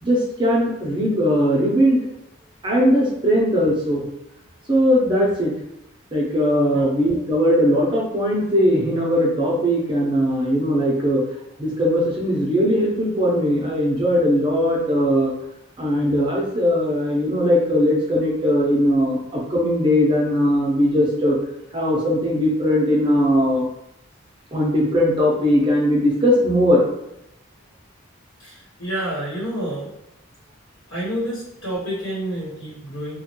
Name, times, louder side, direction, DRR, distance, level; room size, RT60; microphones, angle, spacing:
voice 1, 0.0-2.0 2.6-4.1 4.7-5.5 6.1-11.2 11.6-15.3 15.8-21.4 21.7-23.7 24.5-26.8, equal, 25° right, -3 dB, 0.6 m, -19 dB
voice 2, 28.4-29.9 30.9-33.2, right 1 dB, 70° left, -7 dB, 1.1 m, -29 dB
3.1 x 2.2 x 2.9 m, 0.82 s
head